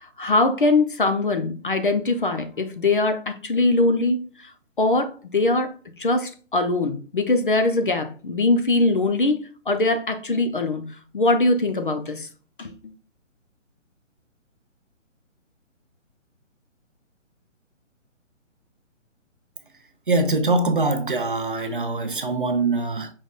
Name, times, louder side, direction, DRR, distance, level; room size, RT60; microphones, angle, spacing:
voice 1, 0.0-4.5 4.8-12.3 12.6-12.7, left 2 dB, 45° left, 0.6 m, -22 dB
voice 2, 20.1-23.1, right 2 dB, 45° right, 0.5 m, -23 dB
5.4 x 3.4 x 2.4 m
hypercardioid pair, 175°, 38 cm